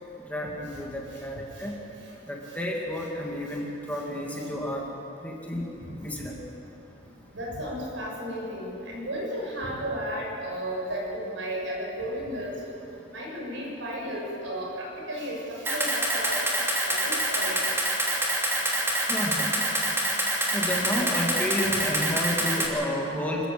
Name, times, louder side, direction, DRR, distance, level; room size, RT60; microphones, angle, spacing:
voice 1, 0.3-1.7 2.3-4.9 5.2-5.7 6.0-6.4 19.0-19.5 20.5-23.5, left 1 dB, 10° left, -2 dB, 2.4 m, -31 dB
voice 2, 7.3-12.5 13.1-16.4 16.8-17.6, equal, 80° right, -3 dB, 6.9 m, -33 dB
Camera, 15.7-22.7, right 1 dB, 15° right, 2.8 m, -26 dB
26.0 x 14.0 x 7.7 m, 3.0 s
head